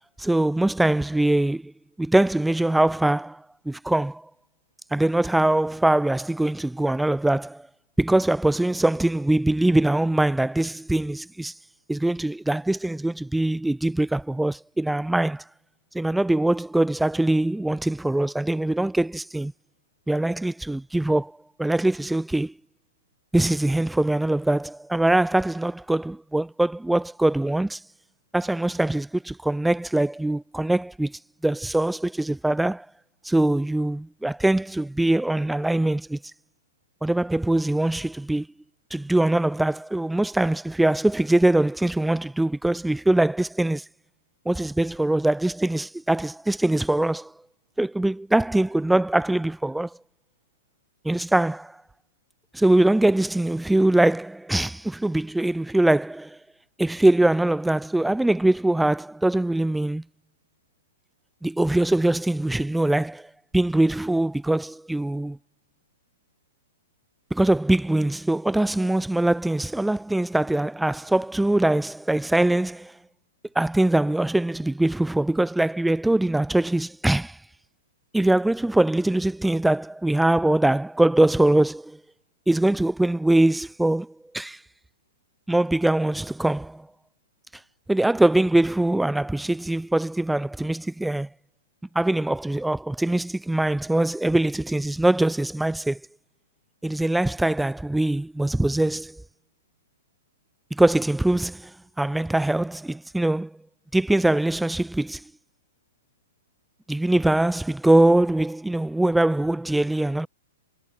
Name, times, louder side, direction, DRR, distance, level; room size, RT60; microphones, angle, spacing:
voice 1, 0.2-1.7 2.0-4.3 4.9-7.7 8.0-11.5 11.9-15.4 15.9-19.5 20.1-21.3 21.6-22.5 23.3-27.8 28.3-32.9 33.2-36.2 37.0-38.5 38.9-43.8 44.5-47.3 47.8-49.9 51.0-51.7 52.5-56.4 56.8-60.0 61.4-63.3 63.5-65.4 67.3-72.9 73.5-77.4 78.1-82.0 82.5-84.6 85.5-86.9 87.9-91.3 91.9-96.0 96.8-99.2 100.7-101.7 102.0-103.6 103.9-105.2 106.9-110.3, right 1 dB, ahead, 0.8 m, -22 dB
hypercardioid pair, 175°, 0 cm